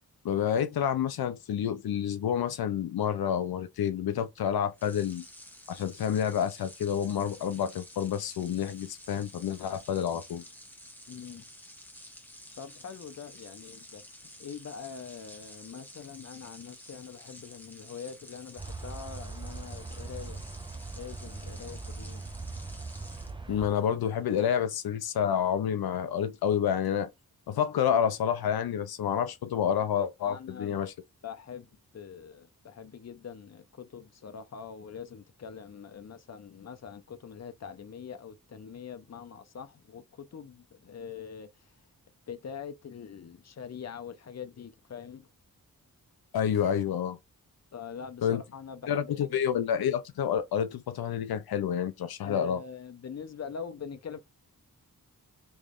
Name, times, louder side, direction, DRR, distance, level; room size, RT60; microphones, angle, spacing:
voice 1, 0.2-5.2 5.7-10.4 23.5-27.1 27.5-30.9 46.3-47.2 48.2-48.4 48.9-52.6, left 8 dB, 85° left, 0.5 m, -29 dB
sound 1, 4.7-23.3, left 1 dB, 5° left, 0.9 m, -51 dB
voice 2, 11.1-11.5 12.6-14.0 14.4-20.4 20.9-22.2 30.2-30.8 31.2-31.7 31.9-41.5 42.3-45.3 47.7-49.4 52.2-54.2, left 7 dB, 45° left, 0.6 m, -43 dB
sound 2, 18.6-23.7, right 3 dB, 15° right, 0.5 m, -40 dB
3.4 x 3.1 x 2.4 m
wide cardioid pair, 70°, 36 cm